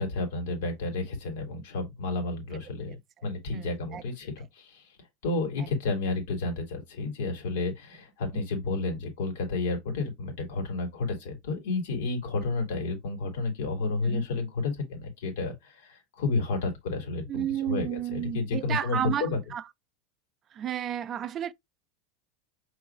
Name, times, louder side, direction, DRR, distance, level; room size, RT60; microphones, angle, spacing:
voice 1, 0.0-4.9 5.2-19.4, left 3 dB, 80° left, 1.9 m, -31 dB
voice 2, 3.5-4.0 5.6-5.7 14.0-14.3 17.3-19.6 20.5-21.5, right 10 dB, 25° right, 0.3 m, -32 dB
6.0 x 3.1 x 2.4 m
supercardioid pair, 155°, 0 cm